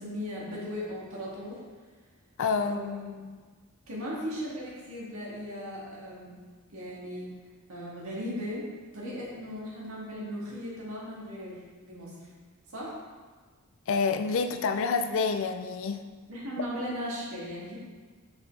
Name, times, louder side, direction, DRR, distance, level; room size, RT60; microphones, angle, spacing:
voice 1, 0.0-1.6 2.6-3.2 3.9-6.4 6.7-7.3 7.7-8.7 8.9-12.3 12.7-13.0 16.3-17.8, equal, 70° right, -5 dB, 2.0 m, -37 dB
voice 2, 2.4-2.8 13.9-16.0, left 5 dB, 60° left, 8 dB, 0.4 m, -27 dB
6.1 x 5.9 x 3.2 m, 1.4 s
head